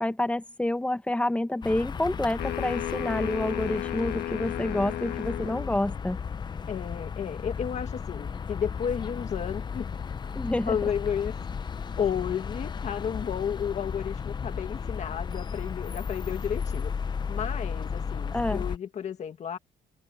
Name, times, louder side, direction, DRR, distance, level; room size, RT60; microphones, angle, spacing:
voice 1, 0.0-6.2 10.3-10.8 18.3-18.6, left 1 dB, 5° left, 1.0 m, -28 dB
sound 1, 1.6-18.8, left 6 dB, 25° left, 0.6 m, -34 dB
sound 2, 2.4-5.7, left 14 dB, 85° left, 2.0 m, -34 dB
voice 2, 6.7-9.9 10.7-11.3 12.0-16.9 17.3-19.6, left 8 dB, 45° left, 1.8 m, -32 dB
open air
cardioid pair, 135°, 17 cm